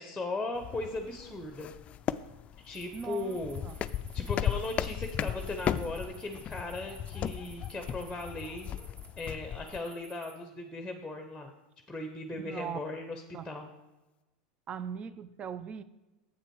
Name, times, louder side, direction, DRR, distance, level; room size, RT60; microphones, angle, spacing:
voice 1, 0.0-1.7 2.6-8.7 9.2-11.5 11.9-13.7, left 2 dB, 5° left, 5 dB, 0.9 m, -38 dB
sound 1, 0.5-9.8, left 10 dB, 35° left, 0.3 m, -36 dB
sound 2, 2.6-9.3 9.7-10.3, right 3 dB, 65° right, 2.3 m, -55 dB
voice 2, 2.9-3.9 12.4-12.8 13.3-13.5 14.7-15.8, right 7 dB, 30° right, 15 dB, 0.5 m, -40 dB
7.8 x 6.5 x 4.7 m, 1.1 s
hypercardioid pair, 100°, 4 cm